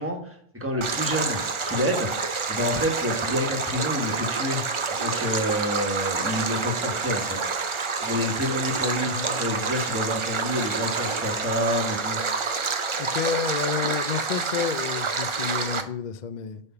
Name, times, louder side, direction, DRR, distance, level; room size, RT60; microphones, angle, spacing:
voice 1, 0.0-2.1 2.5-4.6 5.0-7.5 8.0-12.2, left 1 dB, 10° right, 1.2 m, -28 dB
Stream, 0.8-15.8, right 4 dB, 45° right, 0.3 m, -28 dB
voice 2, 9.1-9.6 13.0-16.6, left 7 dB, 65° left, 0.4 m, -30 dB
8.6 x 3.5 x 5.7 m
omnidirectional pair, 1.3 m